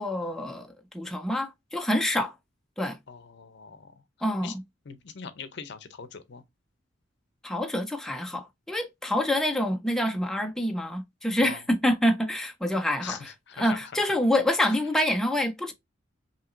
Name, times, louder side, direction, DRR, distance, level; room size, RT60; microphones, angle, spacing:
voice 1, 0.0-2.3 2.8-3.0 4.2-4.6 7.4-15.7, left 1 dB, ahead, 0.4 m, -27 dB
voice 2, 3.1-3.9 4.4-4.5 4.9-6.4 11.4-11.6 13.0-13.9, left 6 dB, 60° left, 0.6 m, -42 dB
5.7 x 2.9 x 2.5 m
head